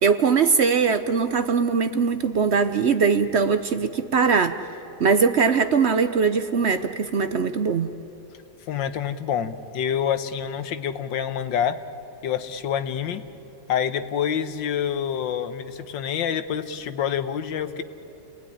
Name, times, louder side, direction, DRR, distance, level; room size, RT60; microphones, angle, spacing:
voice 1, 0.0-4.6 5.0-7.9, right 5 dB, 55° right, 10 dB, 0.7 m, -21 dB
voice 2, 8.7-11.8 12.2-13.2 13.7-17.8, left 8 dB, 85° left, 11 dB, 1.7 m, -27 dB
28.5 x 19.0 x 10.0 m, 3.0 s
omnidirectional pair, 1.9 m